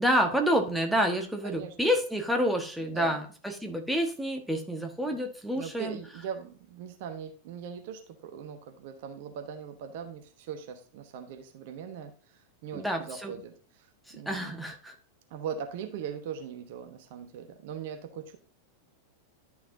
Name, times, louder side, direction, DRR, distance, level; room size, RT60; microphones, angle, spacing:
voice 1, 0.0-6.0 12.7-13.4 14.1-14.9, equal, 5° right, 3 dB, 1.3 m, -28 dB
voice 2, 1.4-1.7 2.8-3.2 5.5-14.5 15.3-18.4, right 7 dB, 50° right, 6 dB, 1.0 m, -40 dB
11.5 x 5.9 x 2.7 m, 0.39 s
figure-of-eight pair, 90°, 0 cm